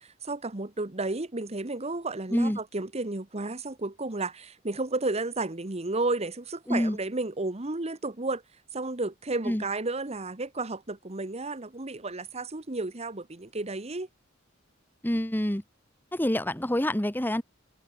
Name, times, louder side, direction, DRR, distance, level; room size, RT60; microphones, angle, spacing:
voice 1, 0.0-8.4 8.7-14.1, right 2 dB, 30° right, 1.3 m, -32 dB
voice 2, 15.0-15.6 16.1-17.4, left 1 dB, 10° left, 1.4 m, -26 dB
head